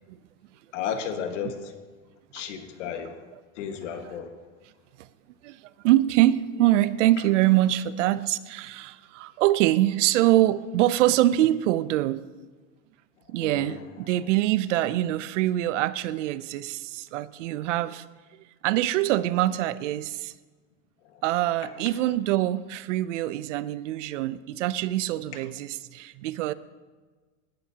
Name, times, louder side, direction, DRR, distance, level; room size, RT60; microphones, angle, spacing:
voice 1, 0.7-1.6 2.3-3.2 3.6-4.3 13.4-13.8, left 8 dB, 70° left, 6 dB, 1.7 m, -33 dB
voice 2, 5.4-12.2 13.3-18.0 18.3-20.3 21.2-26.5, right 14 dB, 70° right, 16 dB, 0.6 m, -24 dB
18.0 x 11.5 x 2.9 m, 1.3 s
supercardioid pair, 165°, 38 cm